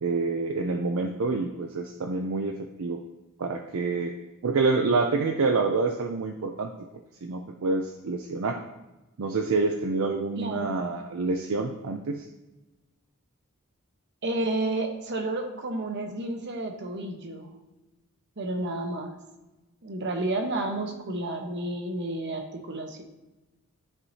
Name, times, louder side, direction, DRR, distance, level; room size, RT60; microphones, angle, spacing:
voice 1, 0.0-3.0 3.4-4.2 4.4-6.7 7.2-8.6 9.2-12.3, right 3 dB, 70° right, 4 dB, 0.5 m, -27 dB
voice 2, 10.4-10.8 14.2-17.5 18.4-19.2 19.8-23.0, right 2 dB, 55° right, 4 dB, 1.0 m, -31 dB
13.0 x 4.6 x 2.8 m, 1.0 s
head